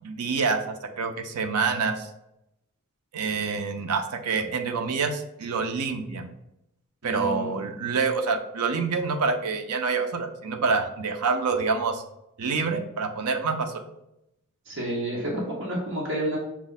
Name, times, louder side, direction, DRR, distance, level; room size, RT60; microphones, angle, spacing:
voice 1, 0.0-2.1 3.1-6.3 7.0-12.0 12.4-13.8, right 4 dB, 85° right, 7 dB, 0.5 m, -27 dB
voice 2, 7.0-7.5 14.7-16.4, right 1 dB, 55° right, -4 dB, 1.0 m, -30 dB
6.0 x 2.1 x 4.0 m, 0.84 s
head